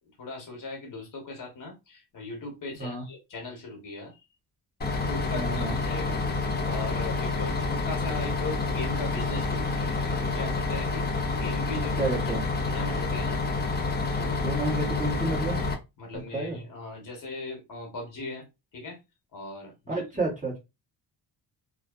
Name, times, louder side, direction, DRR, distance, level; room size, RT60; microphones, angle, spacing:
voice 1, 0.2-4.2 5.0-13.4 14.1-14.4 16.0-18.4 18.7-19.0 19.3-20.2, left 2 dB, 50° left, 2 dB, 1.0 m, -39 dB
Bus, 4.8-15.7, left 3 dB, 25° left, 0.6 m, -28 dB
voice 2, 5.3-5.8 12.0-12.4 14.4-15.6 16.3-16.6 19.9-20.6, right 2 dB, 20° right, -4 dB, 1.2 m, -30 dB
2.5 x 2.2 x 2.3 m, 0.24 s
cardioid pair, 125°, 41 cm